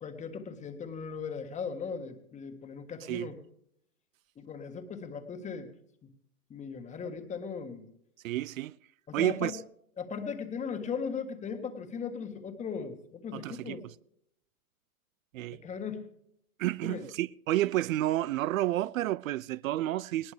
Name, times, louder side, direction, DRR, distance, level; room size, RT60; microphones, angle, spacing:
voice 1, 0.0-3.4 4.4-5.7 6.0-6.1 6.5-7.9 9.1-9.6 10.0-13.9 15.5-16.1 16.9-17.0, left 6 dB, 15° left, 1.7 m, -38 dB
voice 2, 8.2-8.7 9.1-9.5 13.3-13.8 15.3-15.6 16.6-20.3, right 15 dB, 65° right, 0.5 m, -30 dB
19.5 x 18.0 x 3.4 m
hypercardioid pair, 140°, 43 cm